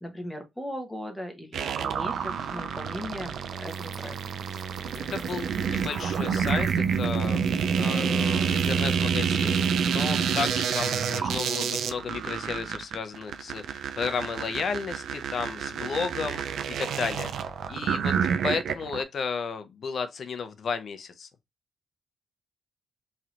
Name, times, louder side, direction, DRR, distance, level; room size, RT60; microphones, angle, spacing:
voice 1, 0.0-4.2, equal, 5° left, 0.8 m, -38 dB
sound 1, 1.5-19.0, right 7 dB, 75° right, 0.4 m, -28 dB
sound 2, 3.5-11.4, right 3 dB, 40° right, 1.2 m, -52 dB
voice 2, 5.0-7.4 7.8-17.3 17.7-18.2 18.4-21.3, left 5 dB, 50° left, 0.5 m, -33 dB
3.2 x 2.7 x 2.4 m
cardioid pair, 130°, 0 cm